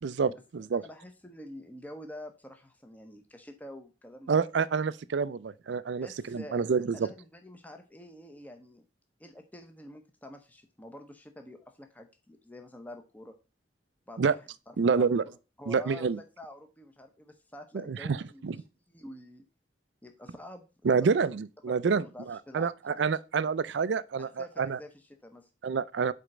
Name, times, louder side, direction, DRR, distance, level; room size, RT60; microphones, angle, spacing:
voice 1, 0.0-0.8 4.3-7.1 14.2-14.3 14.8-15.2 15.7-16.2 17.7-18.2 18.4-18.6 20.8-24.8 25.6-26.1, right 5 dB, 80° right, 0.4 m, -28 dB
voice 2, 0.7-4.4 5.9-6.7 6.9-8.8 9.2-13.3 14.1-15.3 15.6-18.6 18.9-19.4 20.0-21.1 21.6-22.7 24.2-25.5, left 1 dB, 10° left, 0.8 m, -47 dB
5.1 x 4.3 x 6.0 m
head